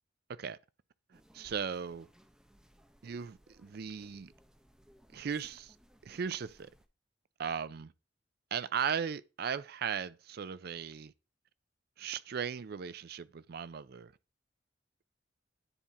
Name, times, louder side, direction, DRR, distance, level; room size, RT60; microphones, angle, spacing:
sound 1, 1.1-6.9, equal, 5° right, 0.6 m, -63 dB
voice 1, 1.1-2.1 3.0-4.3 5.1-5.8 6.0-6.7 7.4-7.9 8.5-11.1 12.0-14.1, right 7 dB, 55° right, 0.4 m, -37 dB
9.9 x 3.6 x 4.2 m
head